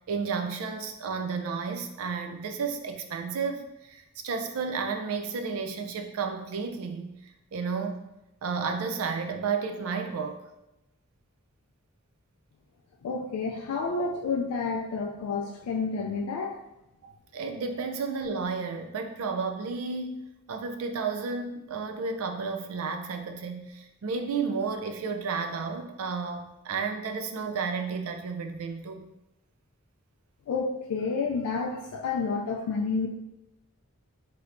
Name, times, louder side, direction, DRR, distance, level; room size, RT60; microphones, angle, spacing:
voice 1, 0.1-7.1 7.5-8.1 8.4-10.4 17.3-29.1, right 5 dB, 70° right, 6 dB, 0.4 m, -32 dB
voice 2, 13.0-16.6 30.5-33.1, left 4 dB, 75° left, 0 dB, 0.3 m, -30 dB
3.2 x 2.8 x 2.5 m, 0.91 s
head